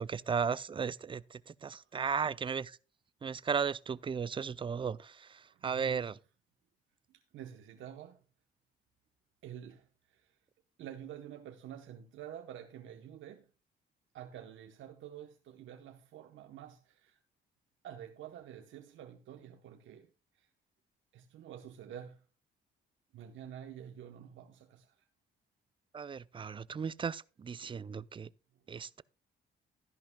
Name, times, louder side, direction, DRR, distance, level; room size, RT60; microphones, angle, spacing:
voice 1, 0.0-2.8 3.2-6.1 25.9-28.3 28.7-29.0, right 6 dB, 25° right, 0.4 m, -35 dB
voice 2, 5.4-6.0 7.1-8.3 9.4-10.4 10.8-13.5 14.1-17.2 17.8-20.5 21.1-22.3 23.1-25.1 28.5-28.6, right 10 dB, 75° right, 0.9 m, -49 dB
13.0 x 11.0 x 2.2 m
cardioid pair, 90°, 20 cm